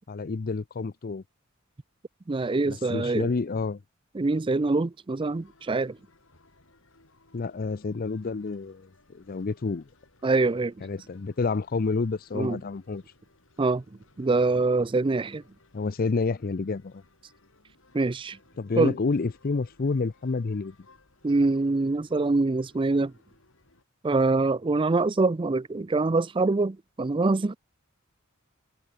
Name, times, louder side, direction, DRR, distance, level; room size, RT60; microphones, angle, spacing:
voice 1, 0.1-1.2 2.6-3.8 7.3-9.9 10.8-13.0 15.7-17.0 18.6-20.8, left 4 dB, 45° left, 0.5 m, -29 dB
voice 2, 2.3-3.3 4.1-6.0 10.2-10.9 12.3-12.6 13.6-13.8 14.2-15.4 17.9-18.4 18.8-18.9 21.2-23.1 24.0-27.6, right 3 dB, 25° right, 0.4 m, -24 dB
sound 1, 5.2-23.8, left 2 dB, 65° left, 4.4 m, -61 dB
head